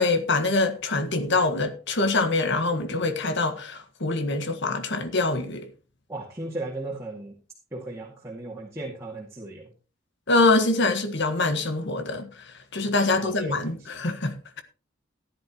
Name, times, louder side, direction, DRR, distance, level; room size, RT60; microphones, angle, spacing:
voice 1, 0.0-5.7 10.3-12.3 12.7-14.6, left 3 dB, 60° left, 1.6 m, -24 dB
voice 2, 6.1-7.3 7.7-9.6 13.1-13.5, right 2 dB, 15° right, 2.3 m, -36 dB
15.0 x 10.5 x 3.1 m
head